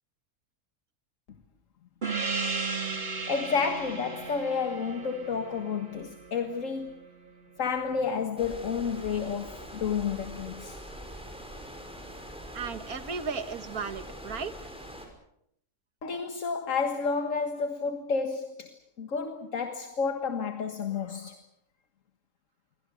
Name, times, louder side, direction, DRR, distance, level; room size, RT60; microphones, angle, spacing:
Gong, 2.0-7.0, right 4 dB, 40° right, 2.4 m, -35 dB
voice 1, 3.3-7.1 7.6-10.8 16.0-21.4, left 5 dB, 60° left, 1.9 m, -31 dB
sound 1, 8.4-15.1, equal, 5° right, 5.8 m, -43 dB
voice 2, 12.5-14.7, right 5 dB, 75° right, 1.9 m, -35 dB
28.0 x 23.5 x 6.3 m
omnidirectional pair, 1.6 m